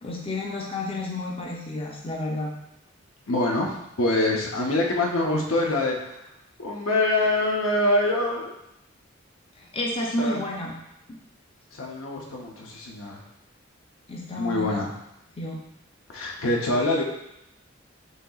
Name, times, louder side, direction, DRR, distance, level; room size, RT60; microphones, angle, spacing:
voice 1, 0.0-2.5 9.6-10.8 11.1-11.2 14.1-14.8 15.4-15.6, left 1 dB, 30° left, -2 dB, 0.5 m, -31 dB
voice 2, 3.3-6.2 6.6-8.5 10.2-10.4 11.8-13.2 14.4-14.9 16.1-17.0, left 2 dB, 85° left, -1 dB, 0.8 m, -25 dB
6.4 x 2.8 x 2.4 m, 0.83 s
head